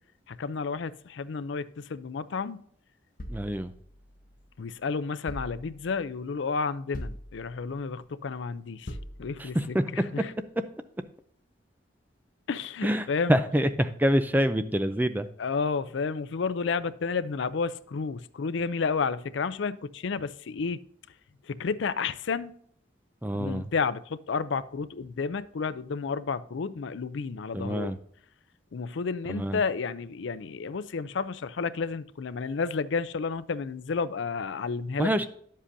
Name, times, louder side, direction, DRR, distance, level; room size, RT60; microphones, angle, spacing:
voice 1, 0.3-2.6 4.6-10.3 12.5-13.3 15.4-20.8 21.4-22.5 23.3-28.0 28.7-35.3, left 5 dB, 70° left, 0.4 m, -31 dB
sound 1, 3.2-4.6 5.3-6.1 6.9-7.8 8.9-9.7, equal, 45° left, 0.8 m, -42 dB
voice 2, 3.3-3.7 9.4-9.8 12.8-15.3 23.2-23.6 27.5-27.9 29.3-29.6 35.0-35.3, equal, 10° right, 0.4 m, -26 dB
10.0 x 7.5 x 2.6 m
head